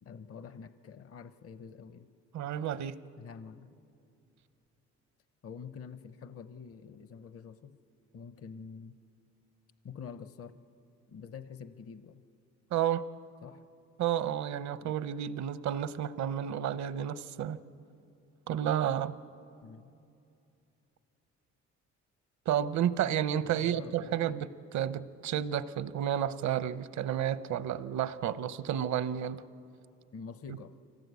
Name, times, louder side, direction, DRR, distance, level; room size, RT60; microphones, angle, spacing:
voice 1, 0.0-2.1 3.2-3.7 5.4-7.8 8.1-9.0 9.8-10.6 11.1-12.2 13.4-13.6 14.8-14.9 19.6-19.9 23.4-24.4 30.1-30.7, left 6 dB, 50° left, 13 dB, 0.8 m, -47 dB
voice 2, 2.3-3.0 12.7-13.0 14.0-17.6 18.5-19.1 22.5-29.4, right 10 dB, 70° right, 15 dB, 0.8 m, -31 dB
25.0 x 17.5 x 8.3 m, 2.6 s
cardioid pair, 90°, 30 cm